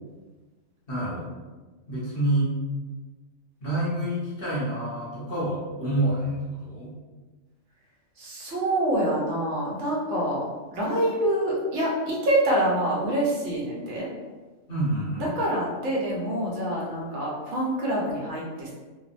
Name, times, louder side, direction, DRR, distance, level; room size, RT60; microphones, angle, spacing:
voice 1, 0.9-1.2 1.9-2.5 3.6-6.9 14.7-15.3, right 1 dB, 50° left, -7 dB, 1.0 m, -27 dB
voice 2, 8.2-10.4 10.7-14.1 15.3-18.7, right 1 dB, 70° right, -5 dB, 1.0 m, -26 dB
2.9 x 2.0 x 2.5 m, 1.3 s
omnidirectional pair, 1.3 m